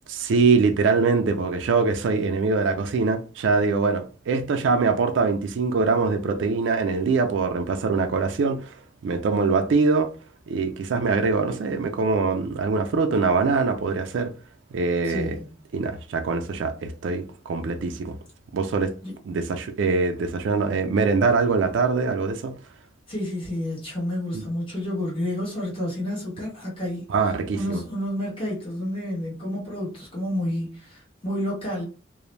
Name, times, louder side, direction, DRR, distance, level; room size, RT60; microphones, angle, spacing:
voice 1, 0.1-8.8 9.0-10.1 10.5-14.3 14.7-15.4 15.7-18.2 18.5-18.9 19.2-22.5 24.3-24.4 27.1-27.8, right 4 dB, 70° right, 0.3 m, -23 dB
voice 2, 15.0-15.6 19.0-19.1 23.1-27.1 27.5-31.8, left 1 dB, 25° left, 1.2 m, -30 dB
2.4 x 2.0 x 3.1 m
head